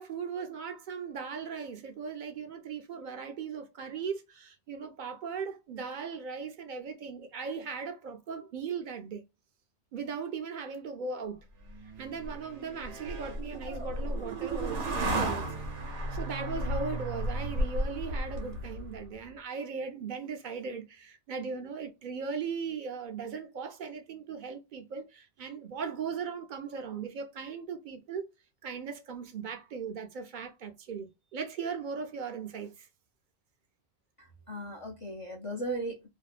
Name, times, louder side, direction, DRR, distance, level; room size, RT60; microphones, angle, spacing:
voice 1, 0.0-9.2 9.9-11.4 12.0-15.5 16.1-28.3 28.6-32.9, right 5 dB, 60° right, 0.5 m, -38 dB
sound 1, 11.7-19.1, right 1 dB, 85° right, 1.1 m, -34 dB
voice 2, 34.2-36.1, right 1 dB, 50° left, 0.4 m, -37 dB
2.7 x 2.1 x 2.3 m
omnidirectional pair, 1.2 m